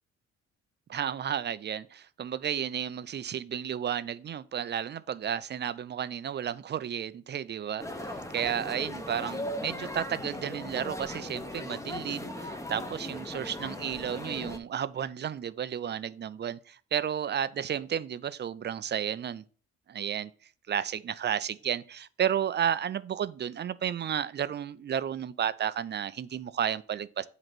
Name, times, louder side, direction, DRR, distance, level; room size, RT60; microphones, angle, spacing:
voice 1, 0.9-19.4 19.9-20.3 20.7-27.3, right 9 dB, 35° right, 0.4 m, -32 dB
sound 1, 7.8-14.6, left 1 dB, 10° left, 0.8 m, -38 dB
7.9 x 3.0 x 6.0 m
cardioid pair, 90°, 30 cm